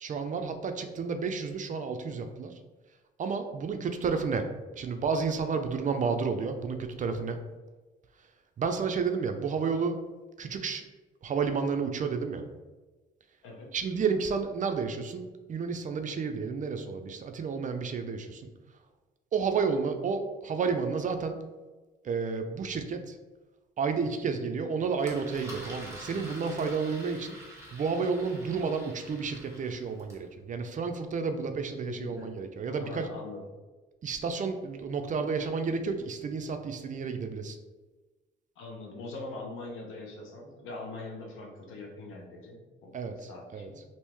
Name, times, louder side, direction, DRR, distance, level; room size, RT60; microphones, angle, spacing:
voice 1, 0.0-2.6 3.2-4.4 4.8-7.4 8.6-10.0 10.4-10.8 11.2-12.4 13.7-18.5 19.3-21.4 22.0-23.2 23.8-27.4 27.7-33.1 34.0-37.6 42.9-43.7, right 5 dB, 40° right, 7 dB, 0.4 m, -31 dB
voice 2, 13.4-13.8 31.9-32.3 32.7-33.4 38.6-43.8, left 2 dB, 85° left, 0 dB, 0.8 m, -42 dB
Engine, 25.0-30.3, right 1 dB, 15° right, 1.1 m, -46 dB
2.9 x 2.6 x 3.4 m, 1.2 s
cardioid pair, 90°, 20 cm